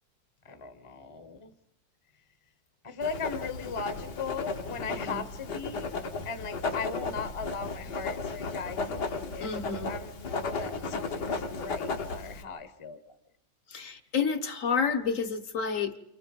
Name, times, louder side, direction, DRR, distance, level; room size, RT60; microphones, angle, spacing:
voice 1, 0.4-1.5 2.8-5.9 6.2-9.6 9.9-13.1, left 5 dB, 20° left, 1.0 m, -38 dB
Writing, 3.0-12.4, left 4 dB, 65° left, 2.0 m, -35 dB
voice 2, 9.4-9.9 13.7-16.0, left 6 dB, 50° left, 1.4 m, -30 dB
30.0 x 27.5 x 5.3 m
omnidirectional pair, 1.9 m